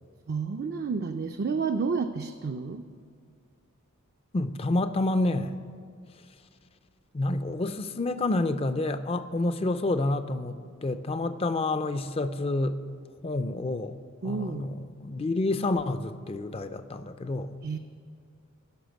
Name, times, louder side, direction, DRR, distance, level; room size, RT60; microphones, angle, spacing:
voice 1, 0.3-2.8 14.2-14.7 17.6-17.8, right 5 dB, 45° right, 6 dB, 0.4 m, -30 dB
voice 2, 4.3-5.5 7.1-12.8 13.2-14.0 14.2-17.6, left 2 dB, 25° left, 11 dB, 0.4 m, -28 dB
11.5 x 6.5 x 9.1 m, 2.2 s
head